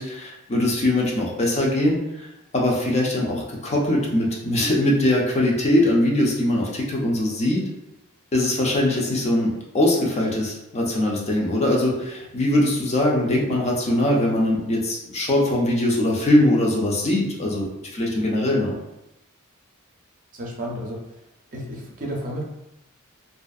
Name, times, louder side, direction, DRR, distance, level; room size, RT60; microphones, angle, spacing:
voice 1, 0.0-2.3 2.5-7.6 8.3-18.8, left 1 dB, 30° left, -2 dB, 0.5 m, -21 dB
voice 2, 20.3-21.2 21.5-22.4, equal, 40° right, -1 dB, 0.5 m, -32 dB
2.5 x 2.4 x 2.3 m, 0.89 s
head